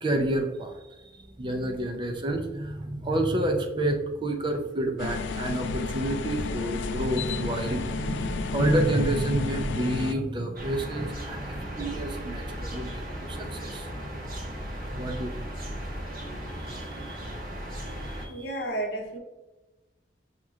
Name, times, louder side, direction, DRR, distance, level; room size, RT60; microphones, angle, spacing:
voice 1, 0.0-13.9 14.9-15.5 16.6-17.2 17.9-18.6, right 1 dB, 25° right, 4 dB, 0.5 m, -29 dB
sound 1, 5.0-10.1, left 4 dB, 80° left, 0.3 m, -31 dB
sound 2, 10.6-18.3, equal, 55° right, 1.1 m, -36 dB
voice 2, 18.3-19.2, right 1 dB, 60° left, 1 dB, 0.9 m, -32 dB
6.2 x 2.9 x 2.4 m, 1.1 s
head